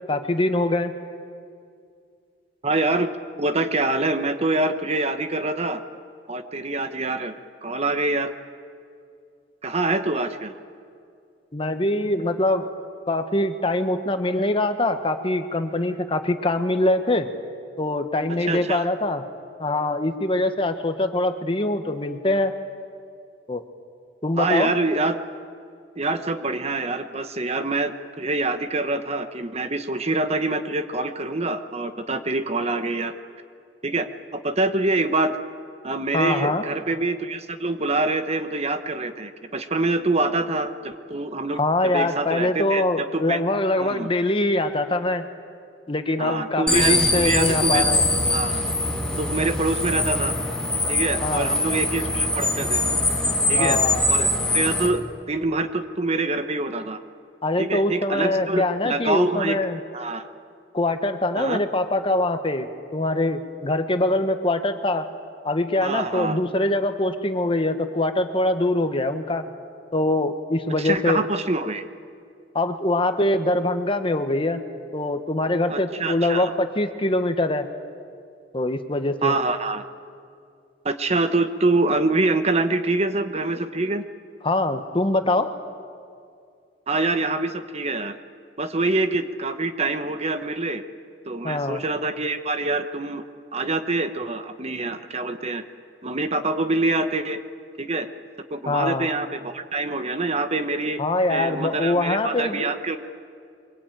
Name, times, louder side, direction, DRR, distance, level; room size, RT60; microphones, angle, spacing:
voice 1, 0.1-0.9 11.5-12.7 13.1-17.3 17.8-19.2 19.6-22.5 23.5-23.6 24.2-24.7 36.1-36.6 41.6-45.2 45.9-48.0 51.2-51.6 53.6-54.0 57.4-59.8 60.7-65.1 65.4-69.4 69.9-71.2 72.5-74.6 74.9-77.7 78.5-79.4 84.4-85.5 91.4-91.8 98.7-99.1 101.0-102.7, left 2 dB, 30° left, 8 dB, 1.3 m, -23 dB
voice 2, 2.6-3.1 3.4-5.8 6.3-7.4 7.6-8.3 9.6-10.5 18.3-18.9 24.4-25.2 26.0-33.1 33.8-34.1 34.3-35.4 35.8-41.6 41.9-43.4 43.8-44.1 46.2-47.9 48.3-48.6 49.2-50.3 50.9-52.8 53.5-53.8 54.1-54.3 54.5-55.0 55.3-57.0 57.6-59.6 59.9-60.3 61.4-61.6 65.8-66.4 70.8-71.8 75.7-76.5 79.2-79.8 80.8-84.0 86.9-88.2 88.6-90.8 91.2-93.2 93.5-95.6 96.0-97.4 97.8-98.1 98.5-101.0 101.3-103.0, right 2 dB, 35° right, 9 dB, 1.1 m, -25 dB
sound 1, 46.7-54.9, left 2 dB, 5° left, 2.4 m, -23 dB
24.0 x 22.5 x 9.1 m, 2.3 s
head